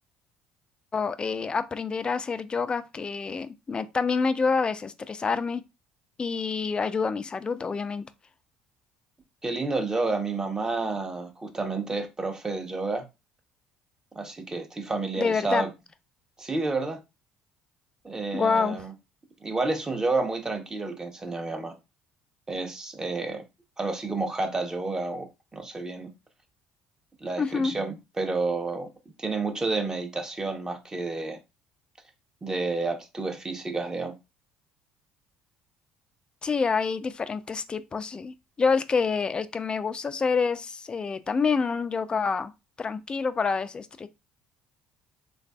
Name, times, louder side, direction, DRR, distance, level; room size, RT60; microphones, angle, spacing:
voice 1, 0.9-5.6 6.2-8.1 15.2-15.6 18.3-18.8 27.4-27.7 36.4-42.5 42.8-44.1, left 5 dB, 30° left, 0.3 m, -27 dB
voice 2, 9.4-13.1 14.2-15.7 16.4-17.0 18.0-18.9 19.4-21.7 22.5-23.4 23.8-26.1 27.2-28.9 29.2-31.4 32.4-34.1, right 3 dB, 20° right, 0.7 m, -30 dB
3.2 x 2.5 x 2.3 m
supercardioid pair, 70°, 3 cm